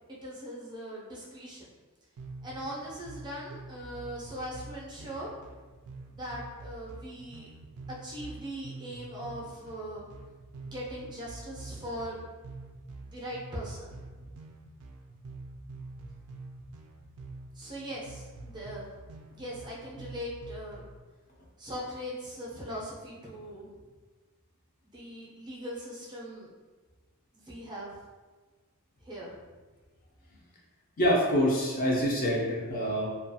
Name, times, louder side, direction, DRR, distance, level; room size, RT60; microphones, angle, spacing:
voice 1, 0.1-1.7 2.4-5.3 6.1-7.5 7.9-10.0 10.6-12.2 13.0-14.3 17.5-20.8 21.6-23.8 24.9-26.5 27.3-28.0 29.0-29.3, equal, 20° right, -5 dB, 0.5 m, -40 dB
sound 1, 2.2-21.0, right 3 dB, 80° right, 0.3 m, -47 dB
voice 2, 31.0-33.1, equal, 40° left, -3 dB, 0.5 m, -26 dB
2.4 x 2.2 x 2.6 m, 1.3 s
head